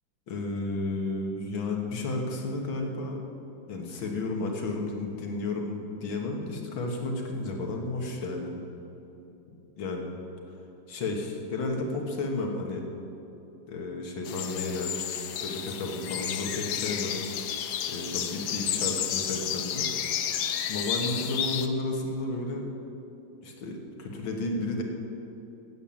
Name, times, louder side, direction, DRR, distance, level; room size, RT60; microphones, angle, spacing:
voice 1, 0.3-3.2 3.7-8.6 9.8-10.1 10.9-12.8 13.7-17.2 17.9-19.9 20.7-22.7 23.4-24.8, left 2 dB, 85° left, 1 dB, 2.2 m, -32 dB
sound 1, 14.3-21.7, left 9 dB, 65° left, 1.1 m, -31 dB
11.0 x 8.7 x 7.5 m, 3.0 s
omnidirectional pair, 2.1 m